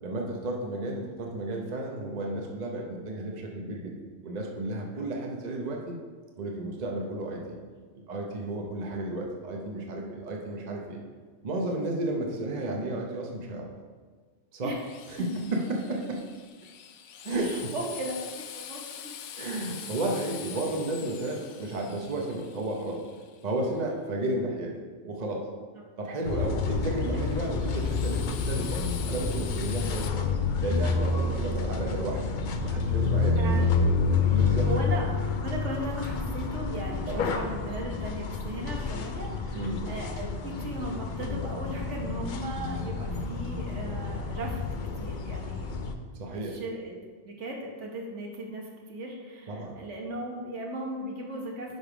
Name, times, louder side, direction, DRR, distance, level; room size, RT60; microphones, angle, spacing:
voice 1, 0.0-4.0 4.2-6.0 6.4-7.6 7.9-11.0 11.4-13.7 14.5-14.7 15.1-16.2 17.2-17.7 19.4-23.0 23.4-24.8 25.0-25.5 26.0-30.3 30.6-32.2 32.6-33.4 34.3-34.7 37.1-37.2 39.5-39.8 43.1-43.2 46.1-46.6 49.5-49.7, right 2 dB, 40° right, 0 dB, 0.9 m, -32 dB
Drill, 14.8-23.7 27.1-30.1, left 9 dB, 75° left, 0.9 m, -44 dB
voice 2, 17.4-18.1 18.5-19.1 33.3-33.6 34.6-35.1 35.4-44.7 45.0-45.7 46.3-51.8, right 1 dB, 70° right, 0 dB, 1.4 m, -37 dB
sound 1, 26.2-45.9, left 4 dB, 55° left, 0.6 m, -29 dB
10.5 x 3.5 x 4.9 m, 1.5 s
omnidirectional pair, 1.3 m